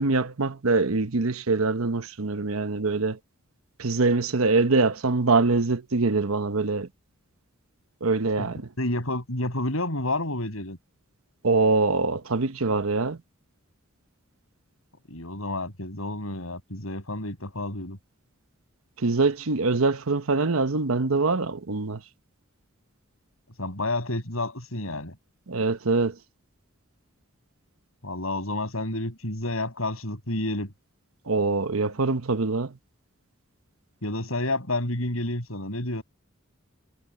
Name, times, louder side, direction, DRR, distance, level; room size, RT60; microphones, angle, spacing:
voice 1, 0.0-3.2 3.8-6.9 8.0-8.7 11.4-13.2 19.0-22.0 25.5-26.2 31.3-32.8, right 3 dB, 80° right, 1.0 m, -24 dB
voice 2, 8.8-10.8 15.1-18.0 23.6-25.1 28.0-30.7 34.0-36.0, left 2 dB, 80° left, 6.9 m, -30 dB
head